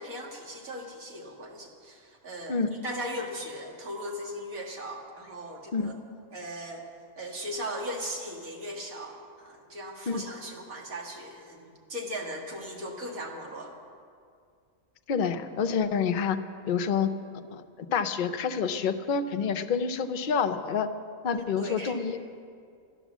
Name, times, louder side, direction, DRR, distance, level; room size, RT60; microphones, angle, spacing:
voice 1, 0.0-5.9 6.3-6.8 7.2-13.8 21.3-21.9, equal, 75° right, 0 dB, 2.2 m, -38 dB
voice 2, 15.1-16.4 16.7-17.1 17.5-17.6 17.9-20.9 21.2-22.2, left 6 dB, 50° left, 8 dB, 0.6 m, -27 dB
12.5 x 11.0 x 7.2 m, 2.3 s
omnidirectional pair, 1.4 m